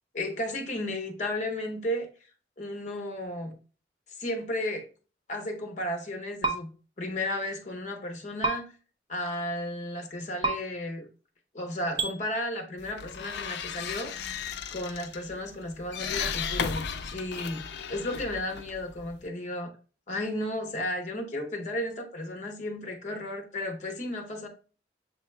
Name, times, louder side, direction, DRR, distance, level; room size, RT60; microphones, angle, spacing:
voice 1, 0.1-2.1 2.6-3.6 4.2-4.9 5.3-6.7 7.0-8.7 9.1-11.1 11.5-14.1 14.7-16.9 17.1-17.6 17.9-19.7 20.1-24.5, left 1 dB, 40° left, 0.7 m, -33 dB
sound 1, 6.4-6.6 8.4-8.6 10.4-10.5 12.0-12.1, right 3 dB, 25° right, 0.6 m, -26 dB
sound 2, 12.8-19.3, left 6 dB, 70° left, 0.4 m, -36 dB
6.6 x 2.2 x 3.1 m
head